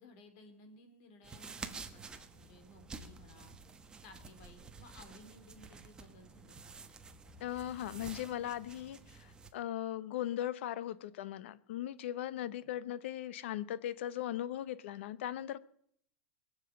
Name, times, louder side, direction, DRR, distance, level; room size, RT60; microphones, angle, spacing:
voice 1, 0.0-3.5 4.0-6.7 7.2-7.4 12.4-12.7, left 2 dB, 50° left, 7 dB, 3.2 m, -58 dB
sound 1, 1.2-9.5, right 4 dB, 10° right, 1.1 m, -50 dB
voice 2, 7.4-15.6, left 12 dB, 70° left, 17 dB, 0.9 m, -38 dB
21.5 x 7.4 x 7.9 m, 0.68 s
supercardioid pair, 160°, 7 cm